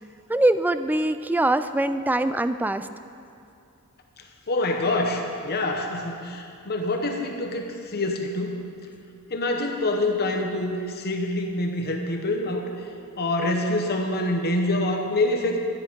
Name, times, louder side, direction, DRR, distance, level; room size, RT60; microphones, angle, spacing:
voice 1, 0.3-2.9, right 1 dB, 10° right, 11 dB, 0.3 m, -23 dB
voice 2, 4.5-8.6 9.3-12.7 13.2-15.6, left 2 dB, 45° left, 2 dB, 1.0 m, -26 dB
13.0 x 10.5 x 5.3 m, 2.6 s
head